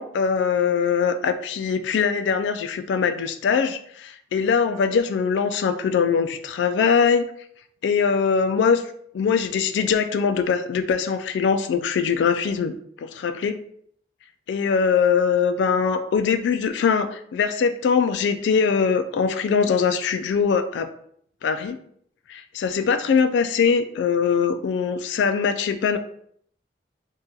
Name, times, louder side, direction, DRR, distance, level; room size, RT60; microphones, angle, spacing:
voice 1, 0.0-7.3 7.8-8.8 9.1-13.6 14.5-20.9 21.4-21.8 22.3-26.0, left 6 dB, 90° left, 10 dB, 0.3 m, -22 dB
2.7 x 2.3 x 3.7 m, 0.65 s
head